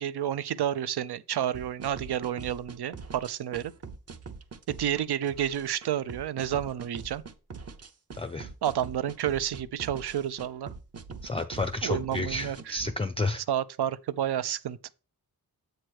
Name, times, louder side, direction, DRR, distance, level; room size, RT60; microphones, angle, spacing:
voice 1, 0.0-3.7 4.7-7.2 8.6-10.7 11.8-12.8 13.5-14.9, right 10 dB, 90° right, 0.5 m, -30 dB
sound 1, 1.5-12.9, right 5 dB, 40° right, 0.6 m, -43 dB
voice 2, 8.2-8.5 11.2-13.4, left 2 dB, 15° left, 0.3 m, -31 dB
7.8 x 3.0 x 6.2 m
wide cardioid pair, 130°, 38 cm